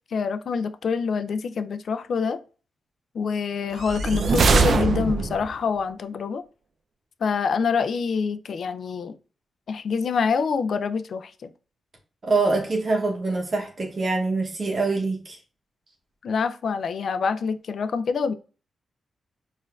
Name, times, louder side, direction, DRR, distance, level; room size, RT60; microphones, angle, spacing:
voice 1, 0.1-2.4 3.1-6.4 7.2-9.1 9.7-11.5 16.2-18.3, left 5 dB, 70° left, 0.3 m, -26 dB
sound 1, 3.8-5.6, right 4 dB, 70° right, 0.4 m, -21 dB
voice 2, 12.2-15.4, right 3 dB, 50° right, 0.8 m, -24 dB
4.3 x 2.4 x 2.3 m
cardioid pair, 65°, 0 cm